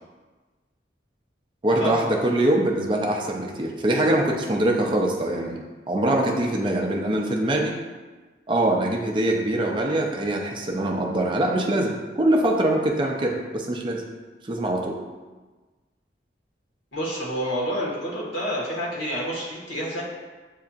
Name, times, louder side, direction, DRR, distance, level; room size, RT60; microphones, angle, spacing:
voice 1, 1.6-5.6 5.9-7.7 8.5-14.0 14.4-15.0, right 1 dB, 25° right, 1 dB, 0.5 m, -23 dB
voice 2, 16.9-20.0, equal, 80° left, -6 dB, 1.5 m, -28 dB
7.6 x 2.8 x 2.4 m, 1.3 s
head